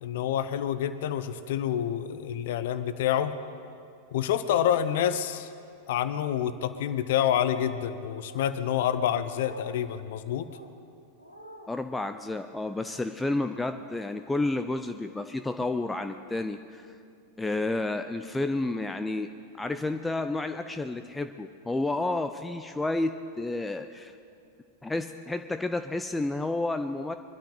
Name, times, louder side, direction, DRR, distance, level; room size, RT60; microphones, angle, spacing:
voice 1, 0.0-3.3 4.1-5.5 5.9-10.5, left 10 dB, 55° left, 12 dB, 0.7 m, -27 dB
sound 1, 7.1-7.7 8.2-8.6 9.2-9.8 10.4-10.7 11.2-11.7, right 1 dB, 90° right, 1.2 m, -49 dB
voice 2, 11.7-17.0 17.4-19.3 19.6-24.1 24.8-27.1, left 2 dB, 10° left, 8 dB, 0.5 m, -30 dB
23.5 x 12.5 x 3.9 m, 2.4 s
figure-of-eight pair, 90°, 0 cm